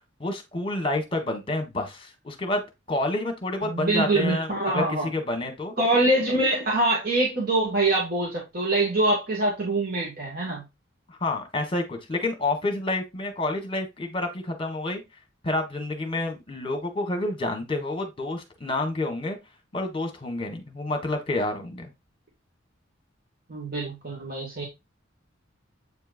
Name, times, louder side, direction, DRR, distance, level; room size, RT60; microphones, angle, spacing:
voice 1, 0.2-2.6 2.9-5.7 11.1-15.0 15.4-19.4 19.7-21.9, left 2 dB, 25° left, 1.6 m, -29 dB
voice 2, 3.6-5.1 5.8-10.6 23.5-24.6, right 2 dB, 50° right, 2.0 m, -24 dB
8.2 x 4.5 x 2.5 m
head